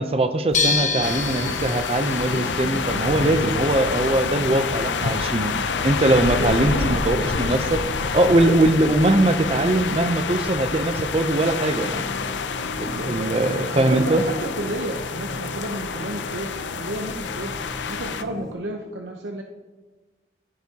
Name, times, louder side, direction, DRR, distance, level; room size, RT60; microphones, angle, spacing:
voice 1, 0.0-5.5 5.8-7.8 8.1-12.2 12.8-14.2, right 2 dB, 35° right, 9 dB, 0.6 m, -21 dB
sound 1, 0.5-5.9, left 4 dB, 45° left, 1.2 m, -29 dB
sound 2, 1.0-18.2, left 5 dB, 90° left, 0.6 m, -28 dB
voice 2, 6.4-7.4 8.6-8.9 13.0-13.3 13.7-17.5 17.9-19.4, right 1 dB, 80° right, 2 dB, 0.8 m, -31 dB
sound 3, 11.7-18.5, left 1 dB, 5° left, 1.5 m, -39 dB
15.0 x 8.1 x 2.9 m, 1.3 s
head